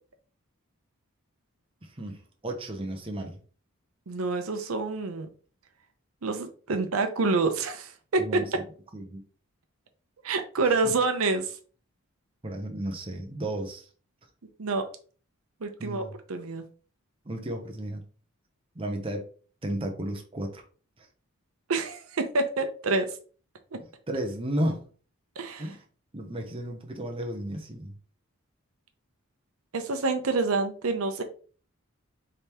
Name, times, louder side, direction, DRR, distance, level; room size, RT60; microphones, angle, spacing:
voice 1, 1.8-2.2 2.4-3.4 8.2-8.6 8.9-9.2 10.8-10.9 12.4-13.9 15.8-16.1 17.3-18.0 18.8-19.3 19.6-20.6 21.0-21.1 24.1-24.9 25.6-25.8 26.1-27.9, right 1 dB, 25° right, 3 dB, 0.7 m, -33 dB
voice 2, 4.1-5.3 6.2-8.4 10.2-11.5 14.6-14.9 15.6-16.6 21.7-23.1 25.4-25.7 29.7-31.2, right 3 dB, 75° right, 7 dB, 0.7 m, -27 dB
5.0 x 3.4 x 2.9 m, 0.40 s
head